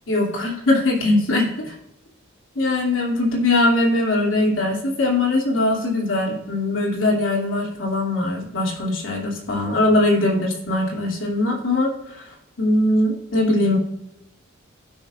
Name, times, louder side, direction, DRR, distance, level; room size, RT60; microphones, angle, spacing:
voice 1, 0.1-1.7 2.5-12.2 12.6-13.8, left 2 dB, 75° left, -2 dB, 2.7 m, -21 dB
16.5 x 6.3 x 2.5 m, 0.85 s
head